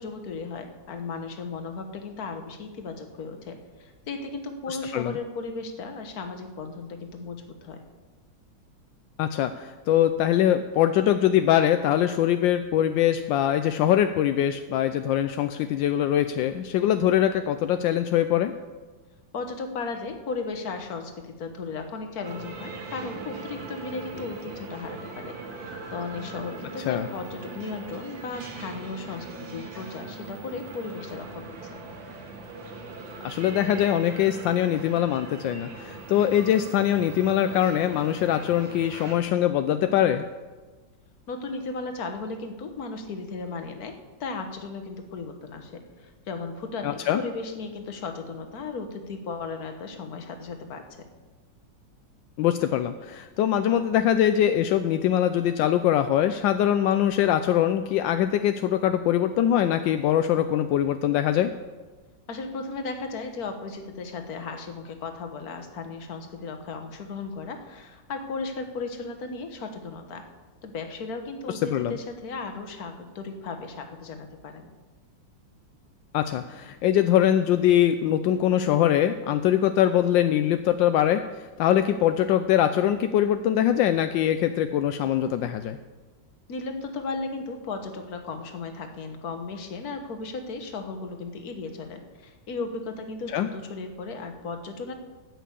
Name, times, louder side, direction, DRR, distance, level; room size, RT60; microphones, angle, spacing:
voice 1, 0.0-7.8 19.3-31.8 41.3-50.8 62.3-70.3 70.6-74.7 86.5-94.9, left 4 dB, 55° left, 6 dB, 1.7 m, -36 dB
voice 2, 4.7-5.2 9.2-18.5 26.9-27.1 33.2-40.3 46.8-47.2 52.4-61.5 71.5-72.0 76.1-85.8 93.3-93.5, left 11 dB, 80° left, 9 dB, 1.3 m, -23 dB
sound 1, 22.2-39.2, right 3 dB, 85° right, 2.3 m, -40 dB
14.0 x 6.1 x 8.3 m, 1.3 s
omnidirectional pair, 2.0 m